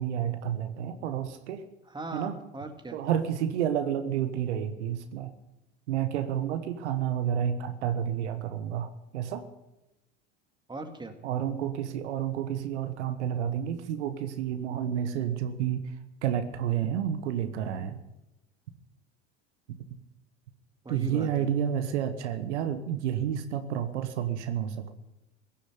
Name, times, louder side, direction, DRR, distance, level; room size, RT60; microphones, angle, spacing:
voice 1, 0.0-1.6 2.1-2.3 2.9-5.3 5.9-9.5 11.2-15.9 16.2-18.0 19.7-19.8 20.9-24.9, right 9 dB, 75° right, 10 dB, 1.2 m, -30 dB
voice 2, 1.9-3.0 10.7-11.1 20.8-21.5, right 2 dB, 15° right, 7 dB, 2.0 m, -39 dB
16.5 x 7.2 x 9.4 m, 0.95 s
hypercardioid pair, 75°, 35 cm